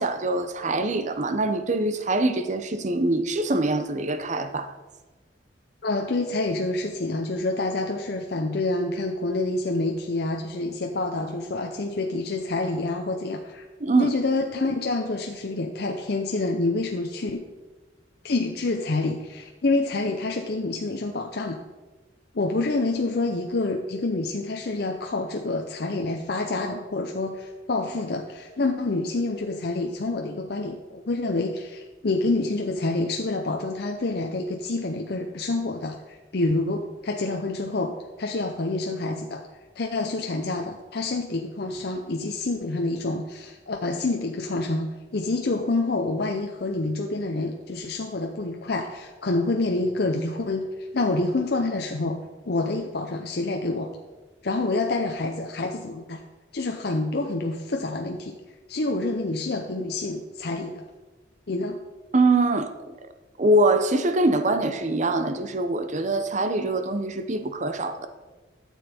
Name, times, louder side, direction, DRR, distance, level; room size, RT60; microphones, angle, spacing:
voice 1, 0.0-4.7 13.8-14.1 62.1-62.7 63.4-68.1, right 2 dB, 40° right, 9 dB, 0.8 m, -23 dB
voice 2, 5.8-13.6 14.0-17.4 18.2-21.6 22.3-37.9 38.2-39.4 39.8-53.9 54.4-56.2 56.5-58.4 58.7-60.8 61.5-61.8, left 2 dB, 60° left, 2 dB, 0.7 m, -27 dB
12.5 x 7.3 x 4.3 m, 1.2 s
head